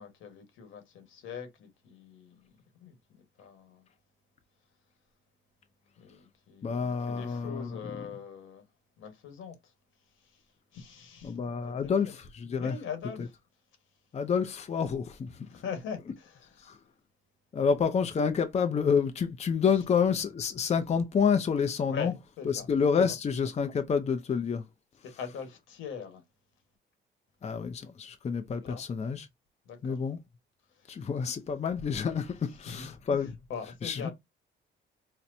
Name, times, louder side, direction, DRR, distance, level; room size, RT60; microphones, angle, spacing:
voice 1, 0.0-3.9 6.0-8.6 9.0-9.7 10.1-12.1 12.6-13.4 15.4-16.7 19.8-19.9 21.9-22.7 23.1-23.2 25.0-26.2 28.6-28.9 29.6-30.0 30.7-31.1 32.5-34.1, left 6 dB, 80° left, 1.4 m, -42 dB
voice 2, 6.6-7.7 11.2-12.7 14.1-15.5 16.6-16.8 17.5-22.1 22.7-24.6 27.4-29.3 29.8-30.2 30.9-33.3 33.8-34.1, left 6 dB, 35° left, 0.5 m, -28 dB
4.2 x 2.1 x 2.6 m
cardioid pair, 90°, 20 cm